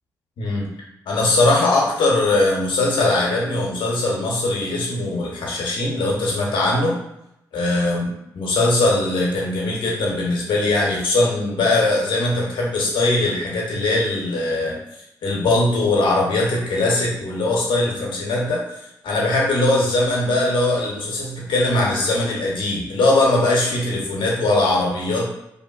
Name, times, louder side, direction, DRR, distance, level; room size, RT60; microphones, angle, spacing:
voice 1, 1.1-7.0 7.5-8.1 8.3-14.8 15.2-18.6 19.0-25.3, left 2 dB, 65° left, -3 dB, 0.9 m, -20 dB
2.8 x 2.5 x 2.4 m, 0.82 s
hypercardioid pair, 45°, 9 cm